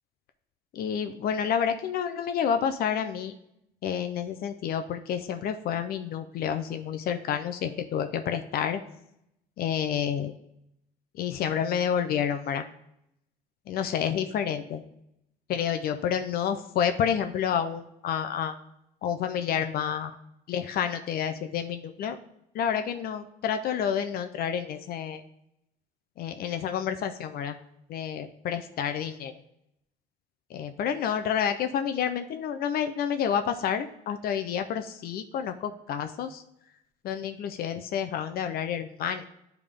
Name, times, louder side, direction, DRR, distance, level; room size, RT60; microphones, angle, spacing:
voice 1, 0.7-3.3 3.8-8.8 9.6-10.3 11.1-12.7 13.7-14.8 15.5-18.5 19.0-20.1 20.5-22.2 22.5-25.2 26.2-27.6 27.9-29.3 30.5-36.4 37.0-39.2, left 8 dB, 65° left, 8 dB, 0.5 m, -29 dB
9.6 x 3.5 x 3.5 m, 0.79 s
cardioid pair, 110°, 17 cm